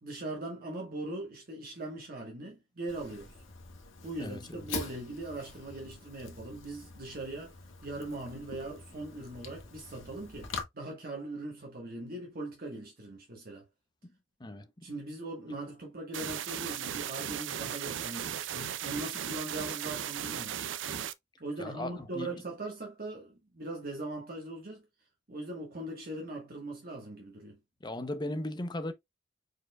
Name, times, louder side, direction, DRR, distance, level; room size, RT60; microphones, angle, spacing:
voice 1, 0.0-3.4 4.0-7.5 7.8-13.6 14.8-20.7 21.4-24.9 25.3-27.6, right 2 dB, 50° right, 1.4 m, -40 dB
Fire, 2.9-10.6, left 4 dB, 90° left, 1.6 m, -44 dB
voice 2, 4.2-4.7 14.0-14.1 14.4-14.9 21.6-22.4 27.8-28.9, left 1 dB, 20° left, 0.6 m, -38 dB
sound 1, 16.1-21.1, right 9 dB, 70° right, 0.5 m, -36 dB
4.8 x 4.4 x 2.2 m
head